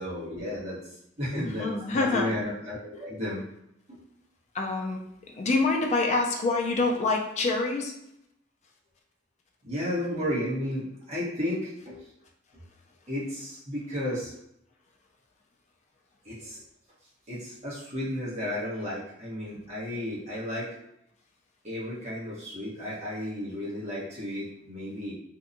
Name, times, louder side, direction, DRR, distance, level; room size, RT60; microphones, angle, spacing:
voice 1, 0.0-3.4 3.9-4.0 9.6-12.1 13.1-14.3 16.2-16.6 17.3-20.7 21.6-25.1, left 1 dB, 35° right, -8 dB, 1.0 m, -33 dB
voice 2, 1.6-2.3 4.5-5.0 5.4-7.9, left 3 dB, 35° left, 0 dB, 0.4 m, -26 dB
2.7 x 2.2 x 2.5 m, 0.79 s
head